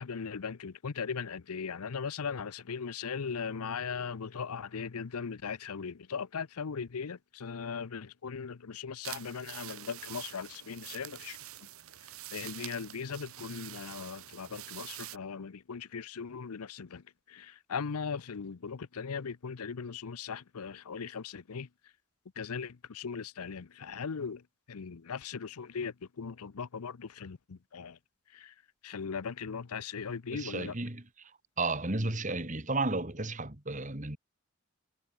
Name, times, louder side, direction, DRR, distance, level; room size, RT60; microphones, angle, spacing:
voice 1, 0.0-11.4 12.3-21.7 22.4-24.4 24.7-28.0 28.3-28.5 28.8-30.7, left 6 dB, 90° left, 0.6 m, -39 dB
sound 1, 9.0-15.2, right 14 dB, 75° right, 1.0 m, -46 dB
voice 2, 30.3-31.3 31.6-34.2, right 2 dB, 35° right, 2.0 m, -33 dB
head